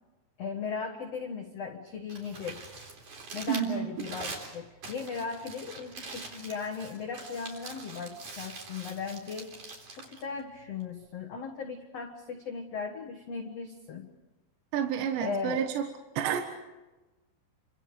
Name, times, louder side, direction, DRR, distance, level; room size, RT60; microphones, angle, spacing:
voice 1, 0.4-2.7 3.3-9.5 9.9-14.1 15.2-15.6, left 5 dB, 70° left, 2 dB, 1.5 m, -37 dB
Crumpling crinkling, 1.9-11.1, right 3 dB, 40° right, 4.7 m, -44 dB
voice 2, 3.5-3.9 14.7-15.9 16.2-16.4, right 9 dB, 75° right, 5 dB, 3.5 m, -29 dB
30.0 x 26.0 x 5.1 m, 1.1 s
omnidirectional pair, 5.3 m